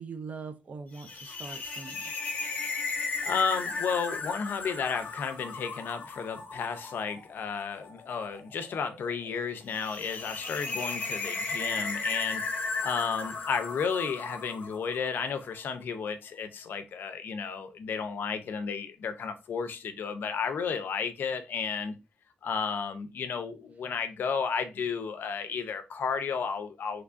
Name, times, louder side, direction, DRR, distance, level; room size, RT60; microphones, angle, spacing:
voice 1, 0.0-2.1, right 4 dB, 40° right, 0.4 m, -42 dB
sound 1, 0.9-15.3, left 3 dB, 45° left, 0.8 m, -36 dB
voice 2, 3.2-12.4 12.8-22.0 22.4-27.0, left 6 dB, 70° left, 0.5 m, -32 dB
3.5 x 3.1 x 2.4 m
wide cardioid pair, 170°, 4 cm